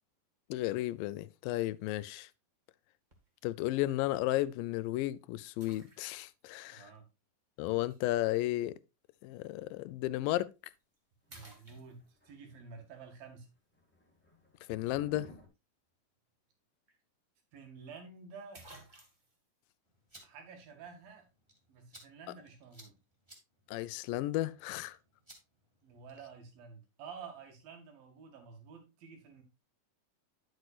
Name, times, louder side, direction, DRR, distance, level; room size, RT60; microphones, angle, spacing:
voice 1, 0.5-2.3 3.4-6.9 7.6-8.8 9.2-10.5 14.7-15.3 23.7-25.0, left 16 dB, 85° left, 2.2 m, -33 dB
sound 1, 3.1-3.4 4.1-4.2 5.6-6.4 7.9-8.0 10.2-10.4 10.8-11.0 11.3-12.4 16.5-16.6 16.9-17.0 18.0-18.1 18.5-19.4, right 2 dB, 30° right, 0.8 m, -56 dB
voice 2, 6.7-7.1 11.3-13.5 17.5-18.6 20.2-21.3 21.7-23.0 25.8-29.4, right 5 dB, 85° right, 3.8 m, -50 dB
sound 2, 11.3-12.8 13.1-13.4 13.7-15.5, left 1 dB, 10° left, 0.7 m, -56 dB
sound 3, 19.8-26.4, right 1 dB, 10° right, 1.7 m, -61 dB
10.0 x 7.9 x 2.4 m
omnidirectional pair, 4.0 m